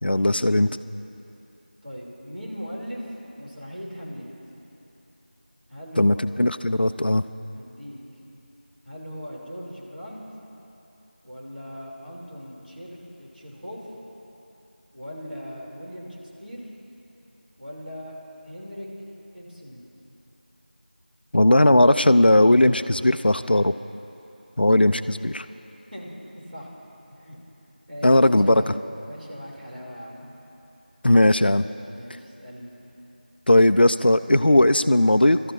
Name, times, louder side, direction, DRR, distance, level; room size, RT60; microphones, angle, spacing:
voice 1, 0.0-0.7 6.0-7.2 21.3-23.7 24.6-25.4 28.0-28.7 31.0-31.7 33.5-35.4, left 1 dB, 75° left, 12 dB, 0.4 m, -18 dB
voice 2, 1.8-3.0 3.3-4.3 5.7-6.2 7.5-8.0 8.9-10.2 11.2-13.9 14.9-16.7 17.6-18.1 18.4-18.9 19.3-19.8 25.9-26.1 26.5-26.7 27.1-27.4 27.9-28.7 29.1-30.3 31.9-32.7, equal, 70° right, -5 dB, 3.7 m, -39 dB
23.0 x 13.5 x 2.9 m, 3.0 s
figure-of-eight pair, 180°, 5 cm